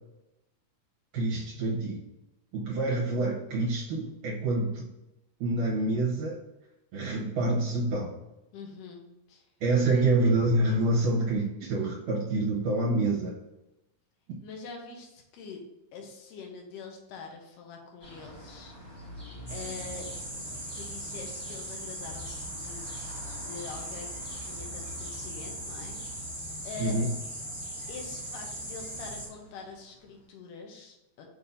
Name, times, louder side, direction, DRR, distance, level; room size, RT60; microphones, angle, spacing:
voice 1, 1.1-2.0 2.5-4.8 5.4-6.4 6.9-8.2 9.6-13.3 26.8-27.1, right 2 dB, 75° right, -4 dB, 2.4 m, -27 dB
voice 2, 8.5-9.5 9.9-10.1 14.4-15.6 15.9-19.1 19.5-20.1 20.7-23.1 23.4-24.2 24.4-26.4 26.6-27.0 27.9-31.3, left 4 dB, 80° left, 1 dB, 2.4 m, -44 dB
sound 1, 18.0-30.3, right 1 dB, 55° left, 0.6 m, -48 dB
sound 2, 19.5-29.3, right 1 dB, 15° right, 0.6 m, -39 dB
6.4 x 2.8 x 5.2 m, 0.94 s
omnidirectional pair, 3.7 m